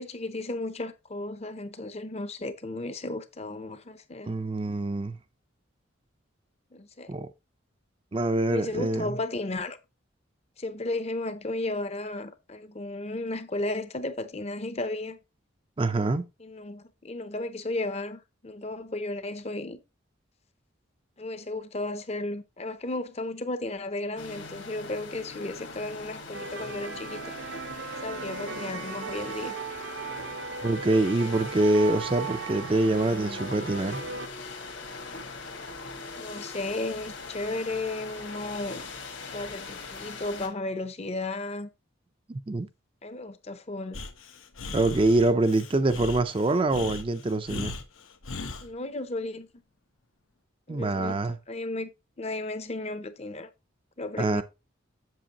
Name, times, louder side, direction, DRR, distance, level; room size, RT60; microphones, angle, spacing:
voice 1, 0.0-4.3 6.7-7.1 8.5-9.8 10.6-15.2 16.4-19.8 21.2-27.3 28.0-29.5 36.2-38.8 39.3-41.7 43.0-44.0 48.6-49.5 50.7-51.2 51.5-51.9 52.2-53.5 54.0-54.4, left 2 dB, 30° left, 0.6 m, -34 dB
voice 2, 4.2-5.2 7.1-7.3 8.1-9.2 15.8-16.2 30.6-34.0 42.3-42.7 44.7-47.8 50.7-51.4 54.2-54.4, right 2 dB, 25° right, 0.4 m, -25 dB
sound 1, 24.2-40.5, left 4 dB, 65° left, 1.6 m, -41 dB
sound 2, 26.3-34.3, right 5 dB, 65° right, 0.8 m, -37 dB
Breathing, 43.9-48.7, left 3 dB, 90° left, 1.1 m, -38 dB
7.7 x 7.3 x 2.9 m
head